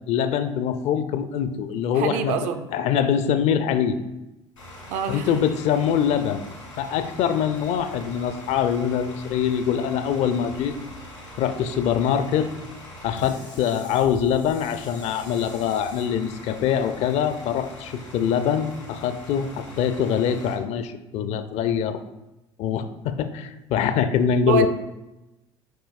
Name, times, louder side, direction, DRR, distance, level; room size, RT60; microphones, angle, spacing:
voice 1, 0.1-4.0 5.1-6.4 6.8-10.7 11.4-12.5 13.0-22.0 22.6-24.7, left 8 dB, 45° left, 10 dB, 0.5 m, -24 dB
voice 2, 1.9-2.6 4.9-5.3 24.5-24.7, right 5 dB, 55° right, 8 dB, 0.5 m, -25 dB
Bus / Idling, 4.6-20.5, equal, 85° left, 1.8 m, -42 dB
9.2 x 4.4 x 2.4 m, 0.98 s
figure-of-eight pair, 60°, 15 cm